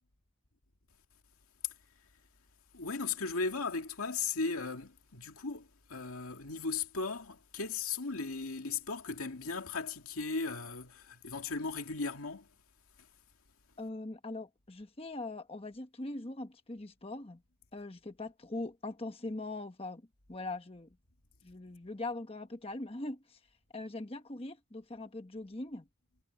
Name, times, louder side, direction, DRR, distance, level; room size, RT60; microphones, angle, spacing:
voice 1, 2.7-12.5, left 4 dB, 85° left, 2.3 m, -37 dB
voice 2, 13.8-17.4 17.7-21.0 21.4-23.4 23.7-25.9, left 2 dB, 25° left, 1.1 m, -41 dB
head